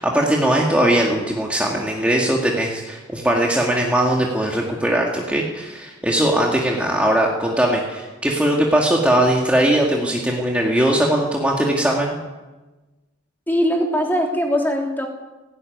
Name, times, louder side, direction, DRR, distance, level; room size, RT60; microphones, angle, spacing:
voice 1, 0.0-12.2, right 1 dB, 5° right, -2 dB, 2.2 m, -20 dB
voice 2, 13.5-15.1, equal, 10° left, 1 dB, 3.2 m, -21 dB
18.5 x 16.5 x 9.5 m, 1.2 s
head